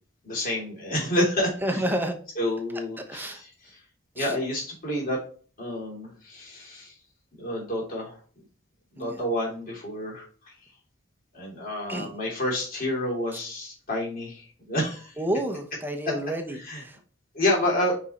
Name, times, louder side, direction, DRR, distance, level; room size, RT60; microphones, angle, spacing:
voice 1, 0.2-1.9 2.3-3.8 4.1-5.2 5.6-6.9 7.3-8.2 8.9-10.5 11.3-15.2 16.0-16.1 16.5-16.8 17.3-18.0, left 1 dB, 45° left, 3.2 m, -29 dB
voice 2, 1.6-2.1 3.1-3.4 4.2-4.3 9.0-9.2 11.9-12.1 15.2-16.6 16.8-17.0, right 1 dB, 10° right, 0.9 m, -29 dB
5.4 x 5.2 x 4.2 m
head